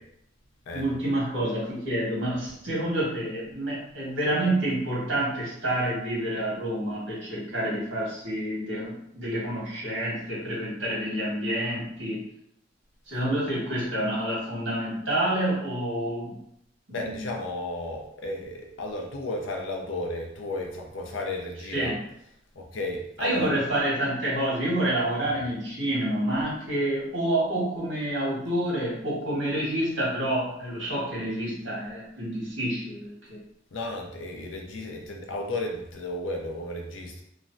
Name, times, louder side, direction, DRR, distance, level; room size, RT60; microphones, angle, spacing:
voice 1, 0.7-12.2 13.1-16.4 16.9-17.3 21.7-22.0 23.2-33.4, right 1 dB, 70° right, -6 dB, 1.5 m, -28 dB
voice 2, 16.9-21.9 22.5-23.5 33.7-37.2, left 2 dB, 80° left, 1 dB, 0.6 m, -33 dB
3.1 x 2.2 x 2.6 m, 0.75 s
head